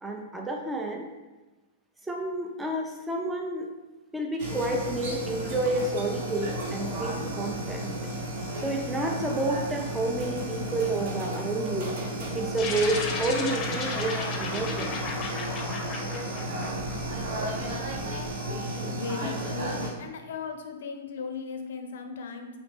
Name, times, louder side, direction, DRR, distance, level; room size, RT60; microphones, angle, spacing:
voice 1, 0.0-1.1 2.1-3.7 4.1-8.0 8.6-12.0 12.3-14.9, right 2 dB, 10° right, 1 dB, 0.6 m, -30 dB
sound 1, 4.4-19.9, right 1 dB, 60° right, 1.1 m, -33 dB
sound 2, 12.6-17.3, left 4 dB, 35° left, 0.7 m, -34 dB
Purr, 13.2-18.3, right 5 dB, 85° right, 1.5 m, -50 dB
voice 2, 18.9-22.5, left 5 dB, 70° left, 5 dB, 0.5 m, -37 dB
4.0 x 2.9 x 3.4 m, 1.2 s
hypercardioid pair, 105°, 0 cm